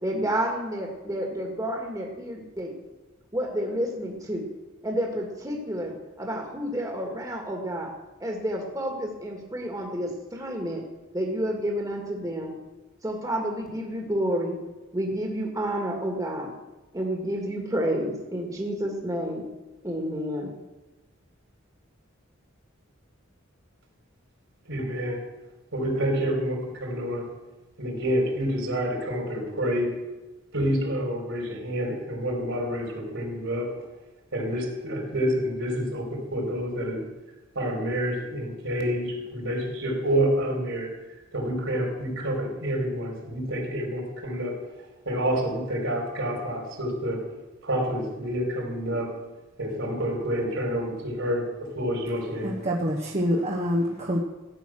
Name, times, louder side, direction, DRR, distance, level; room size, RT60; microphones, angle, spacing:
voice 1, 0.0-2.7 3.3-4.5 4.8-7.9 8.2-10.8 11.1-12.5 13.0-14.6 14.9-16.5 16.9-19.4 19.8-20.5, equal, 15° right, 0 dB, 2.0 m, -30 dB
voice 2, 24.7-25.2 25.7-27.3 27.8-30.0 30.5-33.7 34.3-37.0 37.5-40.9 41.3-44.6 45.1-47.2 47.6-49.1 49.6-52.6, equal, 70° right, 1 dB, 4.3 m, -28 dB
voice 3, 52.4-54.2, equal, 35° right, -2 dB, 1.2 m, -26 dB
15.5 x 9.2 x 6.3 m, 1.1 s
head